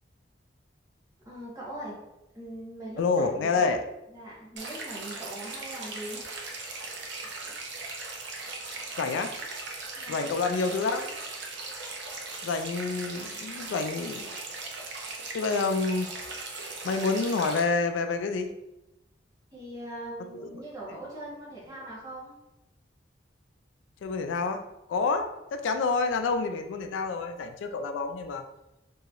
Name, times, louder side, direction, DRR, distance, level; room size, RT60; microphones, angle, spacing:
voice 1, 1.2-1.9 2.3-3.7 4.1-6.3 9.9-10.3 19.5-22.3, right 1 dB, 20° right, -7 dB, 1.0 m, -41 dB
voice 2, 3.0-3.8 9.0-9.4 10.1-11.2 12.4-14.4 15.3-16.1 16.8-18.5 24.0-28.4, left 4 dB, 90° left, 7 dB, 0.3 m, -28 dB
sound 1, 4.6-17.6, right 3 dB, 65° right, 0.6 m, -39 dB
2.9 x 2.7 x 2.4 m, 0.90 s
head